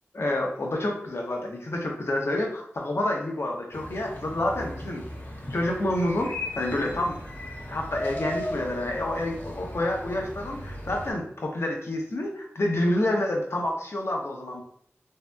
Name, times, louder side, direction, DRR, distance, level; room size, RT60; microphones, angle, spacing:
voice 1, 0.1-5.0 5.5-7.2 7.7-14.6, left 1 dB, 65° left, 1 dB, 0.7 m, -28 dB
sound 1, 3.7-11.1, left 1 dB, 40° left, 0.9 m, -37 dB
3.3 x 2.7 x 2.2 m, 0.68 s
wide cardioid pair, 50°, 5 cm